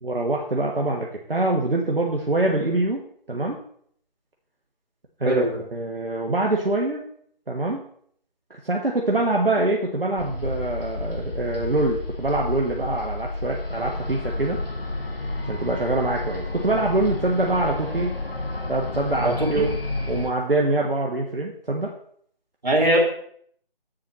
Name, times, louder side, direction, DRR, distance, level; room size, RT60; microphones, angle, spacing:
voice 1, 0.0-3.0 3.3-3.6 5.2-5.4 5.7-7.0 7.5-7.8 8.5-14.6 15.4-18.1 18.7-19.7 20.1-21.9, right 2 dB, 70° right, -1 dB, 1.4 m, -24 dB
voice 2, 5.2-5.6 19.2-19.7 22.6-23.0, right 1 dB, 50° right, -2 dB, 2.8 m, -21 dB
sound 1, 10.2-20.3, left 2 dB, 75° left, 1.6 m, -31 dB
7.6 x 7.6 x 4.2 m, 0.63 s
figure-of-eight pair, 160°, 29 cm